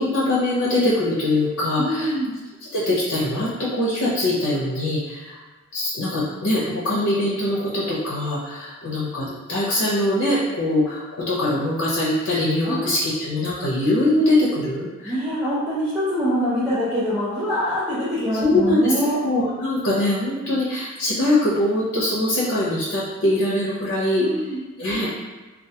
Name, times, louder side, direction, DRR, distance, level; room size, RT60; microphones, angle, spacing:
voice 1, 0.0-2.1 2.7-5.4 5.7-15.2 16.6-16.7 18.3-18.9 19.2-24.3 24.8-25.1, left 1 dB, 85° left, -7 dB, 0.6 m, -22 dB
voice 2, 1.8-2.3 12.6-13.1 15.0-19.2 24.2-24.6, equal, 5° right, -12 dB, 0.5 m, -24 dB
2.3 x 2.2 x 2.7 m, 1.2 s
head